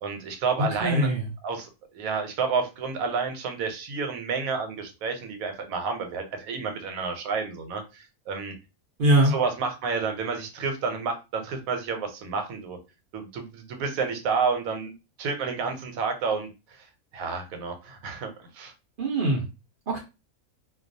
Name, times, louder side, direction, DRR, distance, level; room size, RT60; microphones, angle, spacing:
voice 1, 0.0-1.1 1.4-8.5 9.2-12.8 13.1-14.9 15.2-16.9 17.1-18.7, right 5 dB, 80° right, 6 dB, 1.0 m, -30 dB
voice 2, 0.8-1.3 9.0-9.3 19.0-19.4 19.9-20.0, right 1 dB, 60° right, -1 dB, 0.5 m, -21 dB
2.3 x 2.3 x 2.5 m, 0.27 s
omnidirectional pair, 1.5 m